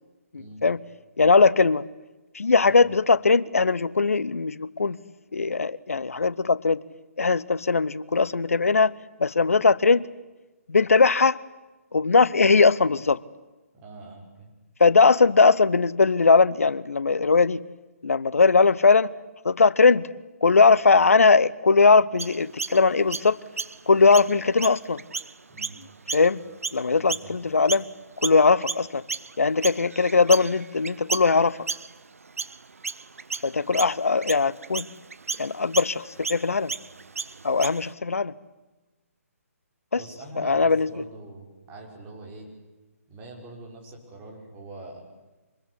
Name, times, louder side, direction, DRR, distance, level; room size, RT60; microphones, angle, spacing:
voice 1, 0.3-0.8 1.2-1.8 2.3-5.0 5.3-6.8 7.2-8.9 9.2-10.1 10.7-11.4 11.9-13.2 14.8-17.6 18.0-19.1 19.4-20.1 20.4-23.4 23.9-25.0 26.1-26.4 26.7-27.8 28.2-29.0 29.4-31.6 33.4-34.9 35.4-36.7 37.4-38.3 39.9-40.0 40.4-41.0, left 4 dB, 65° left, 19 dB, 1.0 m, -20 dB
voice 2, 13.8-14.5 25.5-25.8 26.9-27.4 39.9-42.5 43.1-45.0, right 2 dB, 20° right, 0 dB, 5.9 m, -43 dB
Chirp tweet, 22.2-27.9 28.2-37.9, right 4 dB, 65° right, 1.0 m, -34 dB
26.0 x 21.0 x 9.9 m, 1.2 s
figure-of-eight pair, 140°, 8 cm